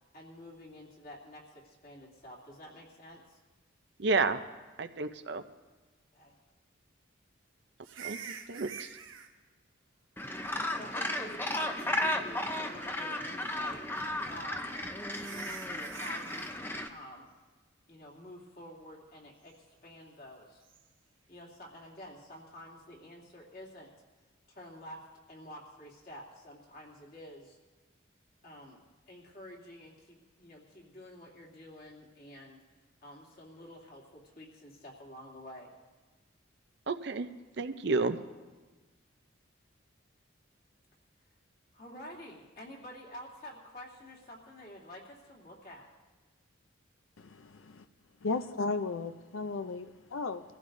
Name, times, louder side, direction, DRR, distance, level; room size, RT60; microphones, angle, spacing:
voice 1, 0.1-3.4 6.1-6.3 10.7-13.8 14.3-14.7 15.3-17.3 17.9-20.6 21.3-23.9 24.5-27.6 28.4-32.6 33.0-35.7 41.7-45.9, equal, 45° left, -3 dB, 2.7 m, -49 dB
voice 2, 4.0-4.4 4.8-5.4 8.0-8.2 8.5-9.0 36.9-37.3 37.6-38.2, right 3 dB, 55° right, 10 dB, 0.6 m, -30 dB
sound 1, 7.8-9.3 10.9-11.5 11.8-11.9 12.5-13.1 14.4-14.5 15.1-16.6 20.6-20.8, right 7 dB, 80° right, 1.1 m, -46 dB
Gull seagull, 10.2-16.9, left 1 dB, 10° left, 0.6 m, -34 dB
voice 3, 47.2-47.8 48.2-50.4, left 3 dB, 85° left, 10 dB, 0.5 m, -35 dB
23.5 x 15.0 x 2.6 m, 1.3 s
head